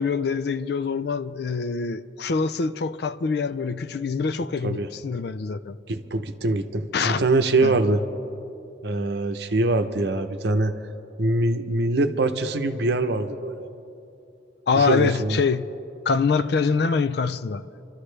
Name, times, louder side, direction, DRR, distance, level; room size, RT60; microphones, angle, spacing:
voice 1, 0.0-5.8 6.9-7.2 7.6-7.8 14.7-15.7 16.1-17.6, left 5 dB, 55° left, 0.4 m, -24 dB
voice 2, 5.9-8.0 8.8-10.7 11.2-13.7 14.7-15.4, right 2 dB, 60° right, 0.8 m, -23 dB
29.0 x 13.0 x 3.3 m
head